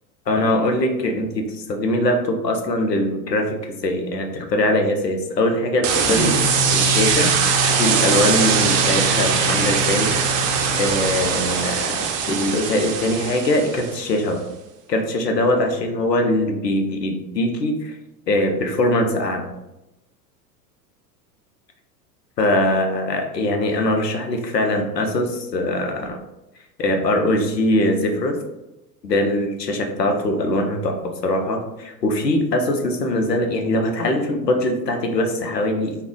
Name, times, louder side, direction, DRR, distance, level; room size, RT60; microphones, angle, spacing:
voice 1, 0.3-6.4 6.7-7.3 7.6-10.1 10.8-14.4 14.9-18.0 18.3-19.5 22.4-26.2 26.8-28.4 29.0-36.0, left 1 dB, 90° left, 3 dB, 0.7 m, -22 dB
sound 1, 5.8-14.0, right 5 dB, 40° right, 0.6 m, -21 dB
3.4 x 2.1 x 3.6 m, 0.93 s
figure-of-eight pair, 90°, 48 cm